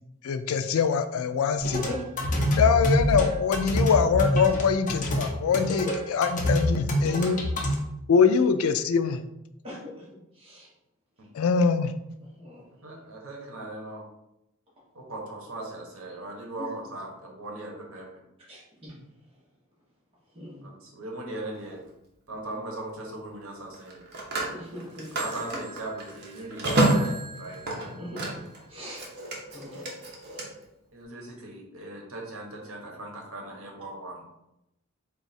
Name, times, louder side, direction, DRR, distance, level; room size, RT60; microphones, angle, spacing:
voice 1, 0.2-1.8 2.5-7.4 8.1-9.2 11.3-11.9, left 6 dB, 85° left, 10 dB, 0.4 m, -23 dB
sound 1, 1.6-7.7, equal, 40° left, 0.7 m, -26 dB
voice 2, 9.6-10.7 12.3-12.7 16.6-16.7 18.5-18.9 20.3-20.7 24.5-25.1 28.0-28.4 28.7-29.0 29.5-30.1, left 1 dB, 30° right, -8 dB, 1.2 m, -40 dB
voice 3, 12.8-14.0 14.9-18.1 20.6-21.8 22.3-24.0 25.1-27.6 30.9-34.3, right 2 dB, 75° right, 0 dB, 0.9 m, -39 dB
Telephone, 21.5-21.8 23.7-28.6 28.9-30.4, right 2 dB, 55° right, 0.9 m, -29 dB
3.9 x 2.4 x 4.1 m, 0.86 s
head